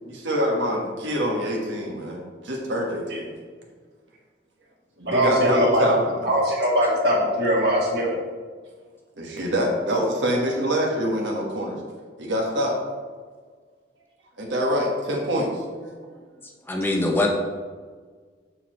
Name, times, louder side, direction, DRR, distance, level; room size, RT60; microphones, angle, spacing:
voice 1, 0.0-2.2 2.4-3.3 5.1-6.1 9.2-11.8 12.2-12.7 14.4-15.5, equal, 90° right, -1 dB, 1.5 m, -25 dB
voice 2, 5.0-5.8 6.2-8.1 9.3-9.4, equal, 60° right, -4 dB, 2.1 m, -21 dB
voice 3, 16.7-17.3, left 2 dB, 10° left, 1 dB, 0.6 m, -23 dB
7.0 x 6.6 x 3.1 m, 1.5 s
head